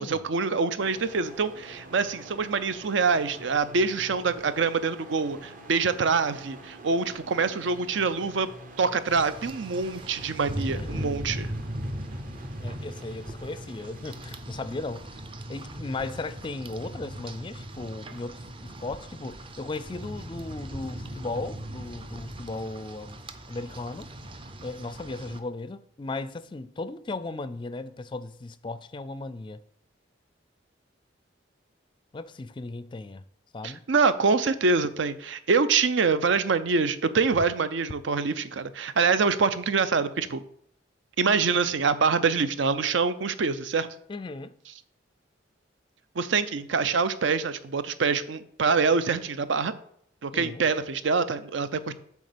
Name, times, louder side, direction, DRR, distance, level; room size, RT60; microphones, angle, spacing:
voice 1, 0.0-8.5 8.8-11.5 33.6-40.4 41.2-43.9 46.2-49.7 50.2-51.9, right 4 dB, 75° right, 0.6 m, -25 dB
sound 1, 0.8-14.4, right 1 dB, 45° right, 0.9 m, -46 dB
Rain, 9.1-25.4, right 1 dB, 25° right, 0.5 m, -39 dB
voice 2, 10.7-11.2 12.6-15.2 15.5-23.2 23.5-24.1 24.6-29.6 32.1-33.2 33.5-33.8 44.1-44.5 50.3-50.6, left 2 dB, 25° left, 0.4 m, -36 dB
8.3 x 3.6 x 6.7 m
head